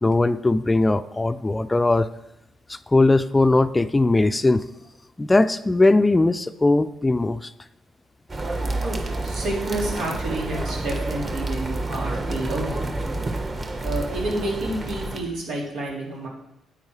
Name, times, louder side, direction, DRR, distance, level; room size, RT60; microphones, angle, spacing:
voice 1, 0.0-2.1 2.7-4.6 5.2-7.5, left 2 dB, 15° left, 12 dB, 0.4 m, -19 dB
sound 1, 8.3-15.2, right 2 dB, 35° right, 1.7 m, -29 dB
voice 2, 8.8-12.8 13.8-16.3, right 1 dB, 90° right, -3 dB, 3.4 m, -29 dB
9.5 x 8.9 x 4.8 m, 0.86 s
cardioid pair, 90°, 0 cm